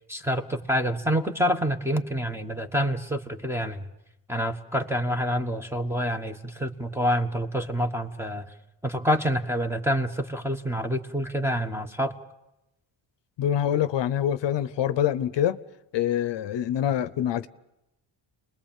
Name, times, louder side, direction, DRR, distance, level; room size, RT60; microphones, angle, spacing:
voice 1, 0.1-3.9 4.3-8.4 8.8-12.1, equal, 5° right, 1.3 m, -27 dB
voice 2, 13.4-15.6 15.9-17.5, left 10 dB, 60° left, 0.9 m, -25 dB
30.0 x 20.5 x 7.4 m
cardioid pair, 145°, 48 cm